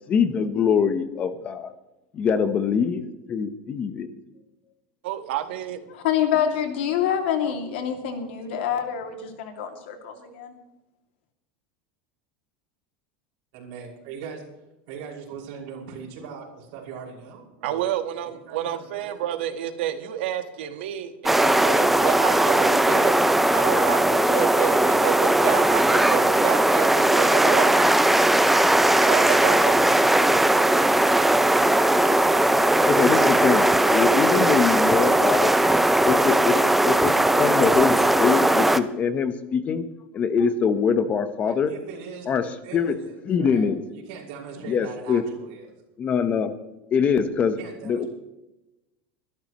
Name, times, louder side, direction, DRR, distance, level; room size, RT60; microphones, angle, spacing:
voice 1, 0.1-1.7 2.1-3.0 3.3-4.1 32.8-35.5 36.0-36.6 36.8-39.8 40.1-41.7 42.3-42.4 42.7-43.0 43.3-43.8 44.6-45.2 46.0-46.5 46.9-47.6 47.8-48.1, left 6 dB, 25° left, 11 dB, 1.0 m, -23 dB
voice 2, 5.0-5.8 17.6-23.1 23.5-27.8 29.0-29.8, right 11 dB, 85° right, 8 dB, 1.5 m, -29 dB
voice 3, 5.9-10.5, left 9 dB, 85° left, 4 dB, 2.6 m, -26 dB
voice 4, 13.5-14.4 14.9-17.9 18.3-19.1 41.4-45.7 47.5-48.1, right 6 dB, 55° right, -2 dB, 5.8 m, -40 dB
sound 1, 21.3-38.8, right 1 dB, 5° right, 0.4 m, -19 dB
23.0 x 13.0 x 3.1 m, 0.97 s
supercardioid pair, 170°, 6 cm